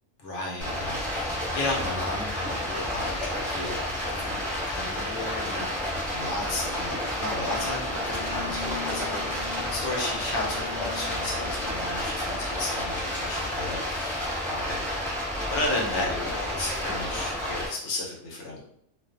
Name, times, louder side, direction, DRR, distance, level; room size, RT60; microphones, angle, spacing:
voice 1, 0.2-3.8 4.1-4.4 4.6-5.7 6.1-14.8 15.5-18.6, left 2 dB, 70° left, -2 dB, 0.9 m, -33 dB
Stream, 0.6-17.7, left 1 dB, ahead, 0.6 m, -31 dB
sound 1, 6.1-12.2, left 3 dB, 60° right, 0.6 m, -43 dB
2.3 x 2.3 x 2.3 m, 0.69 s
omnidirectional pair, 1.3 m